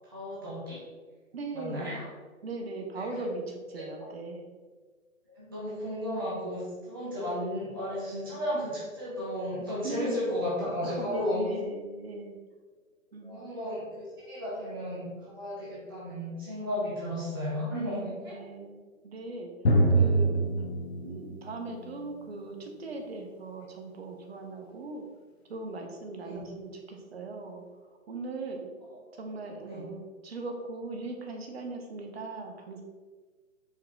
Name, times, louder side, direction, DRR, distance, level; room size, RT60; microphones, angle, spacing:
voice 1, 0.0-0.8 1.5-2.1 2.9-3.1 5.3-6.6 6.9-11.5 13.2-18.4 26.2-26.4 28.9-29.1 29.7-29.8, equal, 20° right, -8 dB, 0.4 m, -34 dB
voice 2, 1.3-2.0 2.4-3.4 3.7-4.5 9.8-10.5 10.8-12.4 13.1-13.4 18.3-18.8 19.0-19.5 19.9-20.5 21.0-25.0 25.5-27.6 28.1-28.7 29.1-32.8, right 3 dB, 50° right, 3 dB, 0.7 m, -39 dB
Drum, 19.6-23.2, right 2 dB, 50° left, 0.7 m, -26 dB
4.6 x 2.8 x 3.4 m, 1.4 s
figure-of-eight pair, 130°, 41 cm